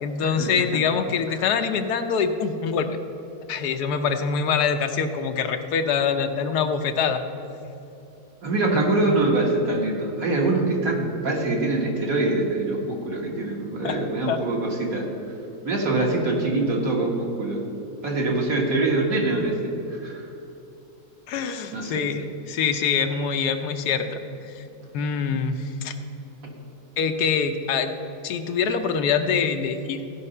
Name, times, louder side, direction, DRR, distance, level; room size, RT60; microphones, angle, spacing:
voice 1, 0.0-2.9 3.5-7.2 13.8-14.0 14.3-14.4 21.3-24.2 24.5-24.6 24.9-25.9 27.0-27.9 28.2-30.0, left 6 dB, 80° left, 7 dB, 1.2 m, -24 dB
voice 2, 8.4-15.1 15.6-17.6 18.0-19.5 19.9-20.2 21.7-22.0, right 2 dB, 60° right, -1 dB, 2.0 m, -24 dB
16.0 x 5.5 x 5.4 m, 2.9 s
omnidirectional pair, 1.7 m